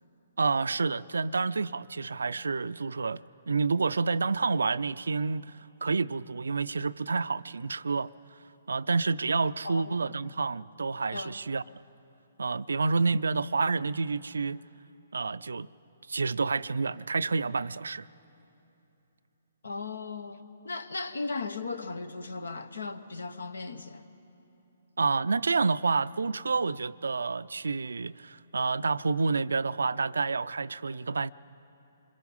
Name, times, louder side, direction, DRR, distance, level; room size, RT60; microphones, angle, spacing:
voice 1, 0.4-5.5 5.8-8.1 8.7-11.6 12.4-14.6 15.1-15.7 16.1-18.1 25.0-31.3, right 4 dB, 75° right, 0.4 m, -29 dB
voice 2, 9.6-10.0 11.1-11.3 19.6-24.1, left 3 dB, 75° left, 1.2 m, -37 dB
26.0 x 22.5 x 5.5 m
figure-of-eight pair, 130°, 0 cm